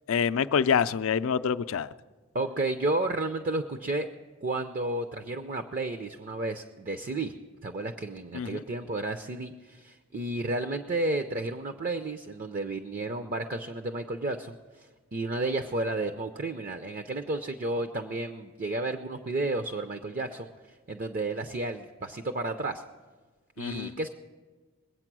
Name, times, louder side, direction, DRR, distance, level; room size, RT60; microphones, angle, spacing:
voice 1, 0.1-1.9 8.3-8.6 23.6-23.9, left 7 dB, 65° left, 13 dB, 0.4 m, -26 dB
voice 2, 2.3-4.1 4.4-7.3 7.6-22.8 23.6-24.1, right 2 dB, 40° right, 8 dB, 0.5 m, -32 dB
21.0 x 8.4 x 6.1 m, 1.4 s
head